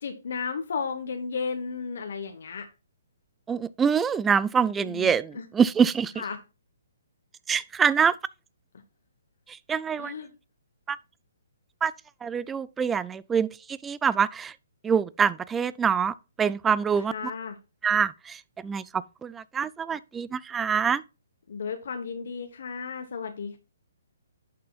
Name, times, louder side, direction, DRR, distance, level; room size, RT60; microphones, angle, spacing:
voice 1, 0.0-2.7 4.8-5.4 6.2-6.4 10.0-10.3 17.1-17.6 21.5-23.6, left 5 dB, 65° left, 1.1 m, -34 dB
voice 2, 3.5-6.1 7.5-8.2 9.5-10.1 10.9-11.0 11.8-11.9 12.2-14.5 14.8-17.3 17.8-21.0, right 7 dB, 10° right, 0.3 m, -25 dB
11.0 x 6.7 x 2.4 m
hypercardioid pair, 150°, 0 cm